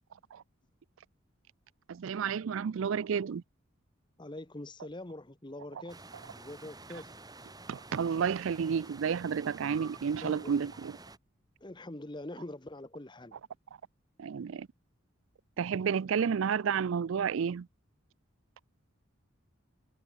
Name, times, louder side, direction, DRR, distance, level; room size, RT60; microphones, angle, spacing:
voice 1, 1.9-3.4 7.7-10.9 14.2-14.7 15.6-17.7, right 7 dB, 70° right, 0.4 m, -31 dB
voice 2, 4.2-7.1 10.2-10.7 11.6-13.4, left 1 dB, 20° left, 1.0 m, -44 dB
sound 1, 5.9-11.2, right 2 dB, 20° right, 7.7 m, -50 dB
head